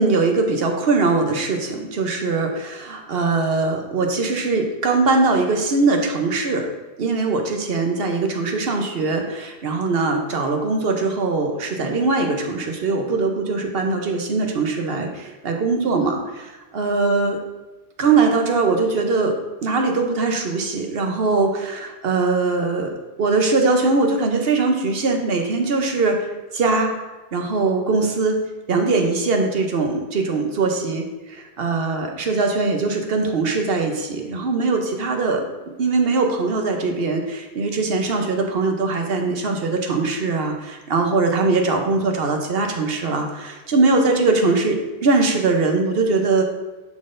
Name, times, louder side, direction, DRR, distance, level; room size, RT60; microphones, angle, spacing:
voice 1, 0.0-6.7 7.0-17.4 18.0-19.4 19.6-22.9 23.2-26.9 27.3-28.4 28.7-35.4 35.8-44.8 45.0-46.4, right 3 dB, 65° right, 4 dB, 1.0 m, -21 dB
10.5 x 3.8 x 2.6 m, 1.1 s
omnidirectional pair, 1.1 m